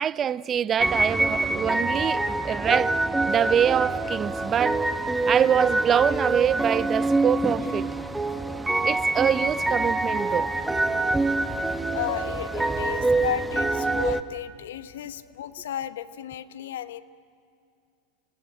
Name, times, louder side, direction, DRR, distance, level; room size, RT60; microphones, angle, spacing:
voice 1, 0.0-3.0 3.3-4.8 5.3-7.9 8.8-10.5, right 9 dB, 30° right, 0.6 m, -24 dB
sound 1, 0.8-14.2, right 2 dB, 5° right, 1.2 m, -25 dB
voice 2, 11.5-17.0, left 11 dB, 80° left, 1.0 m, -34 dB
28.0 x 18.5 x 9.0 m
hypercardioid pair, 105°, 0 cm